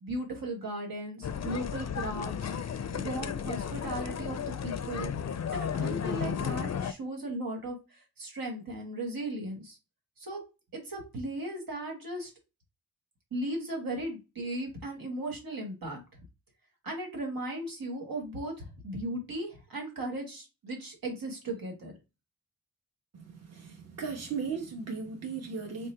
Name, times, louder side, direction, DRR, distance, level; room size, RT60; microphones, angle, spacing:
voice 1, 0.0-2.3 2.9-5.1 5.5-9.8 10.2-10.4 10.7-12.3 13.3-16.0 16.8-21.9, right 1 dB, 80° right, 1.4 m, -37 dB
sound 1, 1.2-6.9, left 7 dB, 50° left, 0.4 m, -34 dB
voice 2, 23.1-25.9, right 5 dB, 45° right, 1.1 m, -37 dB
3.7 x 2.1 x 4.3 m
wide cardioid pair, 85°, 34 cm